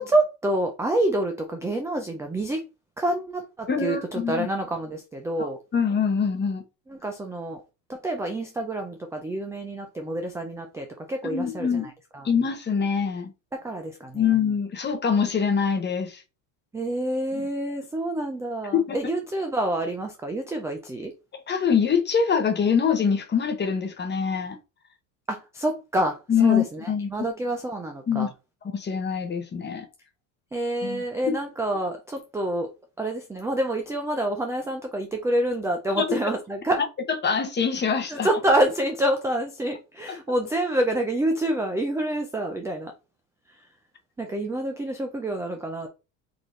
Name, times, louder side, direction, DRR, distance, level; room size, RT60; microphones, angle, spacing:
voice 1, 0.0-2.6 3.0-5.6 6.9-7.6 7.9-11.8 12.1-12.3 13.5-14.3 16.7-21.1 25.3-28.3 30.5-32.7 33.0-36.8 38.1-42.9 43.5-43.6 44.2-45.9, right 1 dB, 5° right, 0.3 m, -27 dB
voice 2, 3.7-4.5 5.4-5.5 5.7-6.6 11.3-11.9 12.2-13.3 14.1-16.2 18.7-19.0 21.5-24.6 26.3-27.1 28.1-28.3 28.6-29.9 30.8-31.3 36.0-36.1 37.2-38.3, left 6 dB, 20° left, 0.8 m, -24 dB
3.9 x 2.6 x 3.1 m
supercardioid pair, 105°, 49 cm